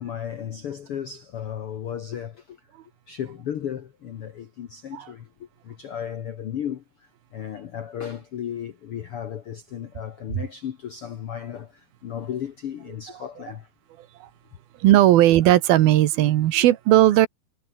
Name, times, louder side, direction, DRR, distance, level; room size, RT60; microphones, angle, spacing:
voice 1, 0.0-2.7 3.1-13.7, left 9 dB, 70° left, 1.3 m, -35 dB
voice 2, 14.8-17.3, right 14 dB, 85° right, 3.1 m, -17 dB
omnidirectional pair, 4.2 m